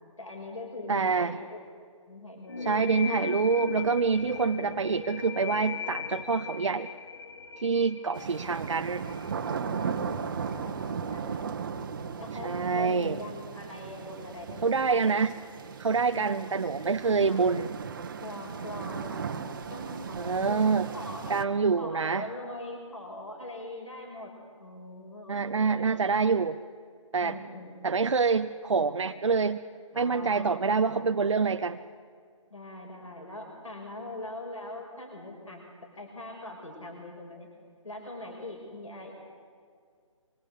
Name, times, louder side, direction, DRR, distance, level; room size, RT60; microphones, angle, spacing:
voice 1, 0.2-1.6 2.1-2.7 3.0-3.1 4.5-4.9 9.6-11.4 12.2-15.3 16.1-16.6 17.0-17.4 18.2-19.2 19.7-21.4 21.8-24.3 24.6-25.9 27.2-28.1 29.9-31.1 32.5-35.7 35.9-37.5 37.8-39.1, left 1 dB, 75° left, 0 dB, 6.3 m, -42 dB
voice 2, 0.9-1.4 2.6-6.9 7.6-9.1 12.4-13.2 14.6-15.3 15.8-17.7 20.1-20.9 21.3-22.3 25.3-26.6 27.1-27.4 27.8-29.6 29.9-31.8, right 5 dB, 65° right, 8 dB, 0.8 m, -26 dB
sound 1, 2.5-9.9, left 6 dB, 50° left, 1.6 m, -38 dB
sound 2, 8.1-21.4, right 6 dB, 40° right, 1.3 m, -37 dB
25.5 x 24.0 x 8.2 m, 2.1 s
figure-of-eight pair, 145°, 17 cm